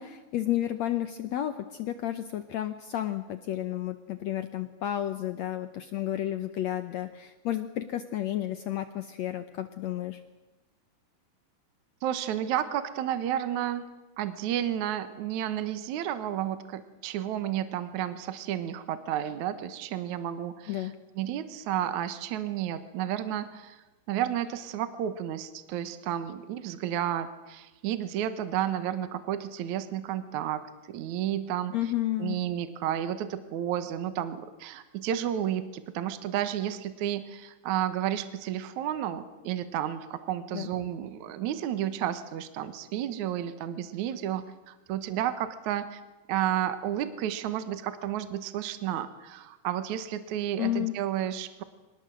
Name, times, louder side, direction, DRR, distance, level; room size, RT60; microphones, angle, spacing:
voice 1, 0.0-10.2 20.7-20.9 31.7-32.4 40.5-40.7 50.6-51.0, left 12 dB, 75° left, 10 dB, 1.6 m, -31 dB
voice 2, 12.0-13.9 14.2-20.9 21.2-30.6 30.9-31.7 32.2-46.0 46.3-51.6, right 11 dB, 65° right, 11 dB, 2.3 m, -32 dB
25.0 x 19.5 x 7.7 m, 1.1 s
omnidirectional pair, 4.2 m